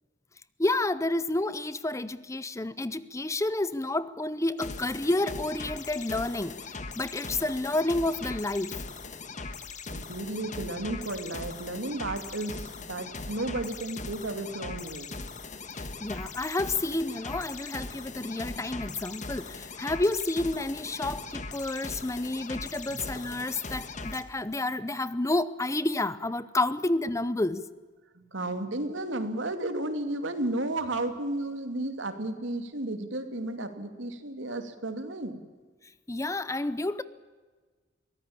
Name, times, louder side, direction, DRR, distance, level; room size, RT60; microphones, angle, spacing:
voice 1, 0.6-8.8 15.7-27.7 36.1-37.0, left 2 dB, 15° left, 0.7 m, -30 dB
sound 1, 4.6-24.2, left 3 dB, 40° left, 1.6 m, -40 dB
voice 2, 9.9-15.1 22.9-23.0 28.1-35.4, right 2 dB, 80° right, 2.6 m, -33 dB
23.0 x 18.0 x 8.7 m
head